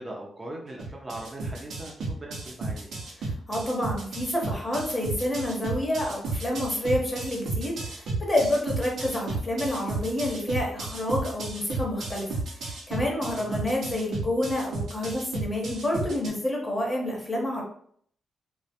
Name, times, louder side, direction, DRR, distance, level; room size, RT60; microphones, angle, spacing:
voice 1, 0.0-3.0 13.3-13.6, right 1 dB, 30° right, -2 dB, 0.6 m, -40 dB
sound 1, 0.8-16.3, right 3 dB, 75° right, 0.6 m, -33 dB
voice 2, 3.2-17.6, left 1 dB, 25° left, -1 dB, 0.9 m, -29 dB
2.1 x 2.1 x 2.8 m, 0.62 s
supercardioid pair, 55°, 0 cm